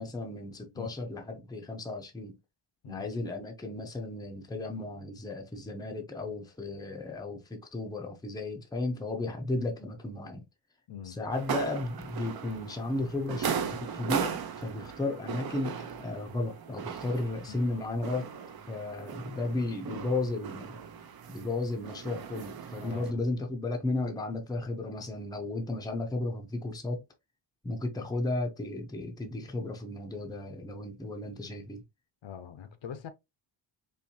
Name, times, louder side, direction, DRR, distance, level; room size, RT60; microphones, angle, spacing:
voice 1, 0.0-2.4 2.9-10.4 11.1-18.3 18.7-20.8 21.3-27.0 27.6-31.8, left 2 dB, 10° left, 0.6 m, -34 dB
voice 2, 10.9-11.2 22.8-23.2 32.2-33.1, left 8 dB, 65° left, 0.8 m, -43 dB
sound 1, 11.3-23.1, right 7 dB, 50° right, 0.6 m, -38 dB
4.5 x 3.1 x 2.8 m
wide cardioid pair, 175°, 50 cm